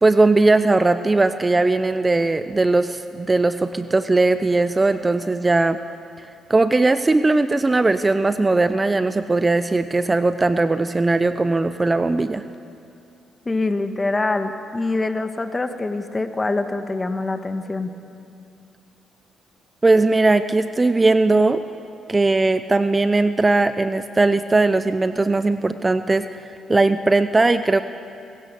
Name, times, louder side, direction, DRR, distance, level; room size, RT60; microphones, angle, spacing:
voice 1, 0.0-5.8 6.5-12.4 19.8-21.6 22.1-26.3 26.7-27.8, right 2 dB, 20° right, 11 dB, 0.6 m, -19 dB
voice 2, 13.4-17.9, left 2 dB, 20° left, 8 dB, 1.4 m, -24 dB
27.0 x 17.0 x 6.9 m, 2.6 s
cardioid pair, 90°, 0 cm